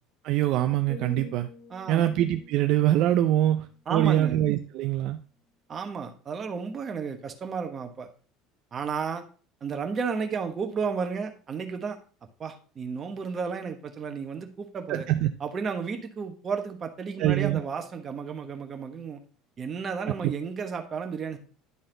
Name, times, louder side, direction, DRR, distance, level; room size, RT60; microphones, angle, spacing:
voice 1, 0.2-1.5 1.9-5.2 14.9-15.3 17.2-17.6 20.2-20.3, right 13 dB, 55° right, 8 dB, 0.4 m, -24 dB
sound 1, 0.9-4.8 5.3-5.6, left 2 dB, 30° left, 2.3 m, -48 dB
voice 2, 1.7-2.1 3.9-4.4 5.7-8.1 8.7-9.2 9.6-12.0 12.4-15.1 15.4-19.2 19.6-21.4, right 5 dB, 25° right, 5 dB, 1.0 m, -32 dB
10.5 x 4.0 x 3.8 m, 0.40 s
cardioid pair, 160°, 0 cm